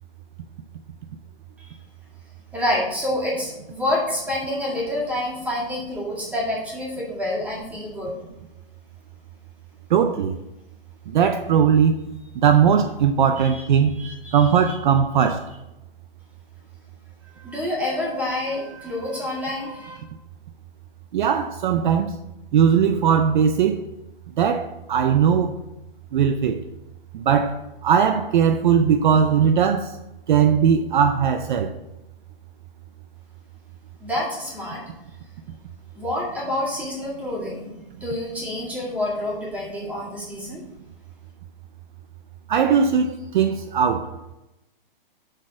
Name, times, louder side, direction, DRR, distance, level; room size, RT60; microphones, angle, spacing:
voice 1, 2.5-8.1 13.4-13.6 14.0-14.8 17.2-20.0 34.0-34.8 36.0-37.7 38.0-40.6, left 1 dB, 5° right, 1.9 m, -28 dB
voice 2, 9.9-10.3 11.1-12.1 12.4-14.1 14.3-15.5 21.1-22.1 22.5-23.8 24.4-25.6 26.1-26.6 27.1-30.0 30.3-31.7 42.5-44.2, right 7 dB, 55° right, 0.5 m, -19 dB
6.4 x 3.9 x 6.1 m
hypercardioid pair, 155°, 29 cm